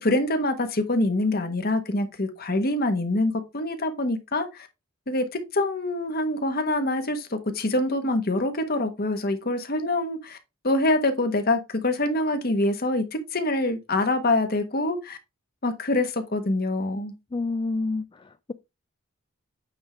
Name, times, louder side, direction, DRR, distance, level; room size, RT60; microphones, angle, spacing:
voice 1, 0.0-4.7 5.1-10.4 10.6-15.2 15.6-17.1, left 2 dB, 45° left, 1.3 m, -25 dB
voice 2, 17.3-18.5, left 3 dB, 25° left, 0.3 m, -29 dB
8.7 x 3.7 x 4.4 m
head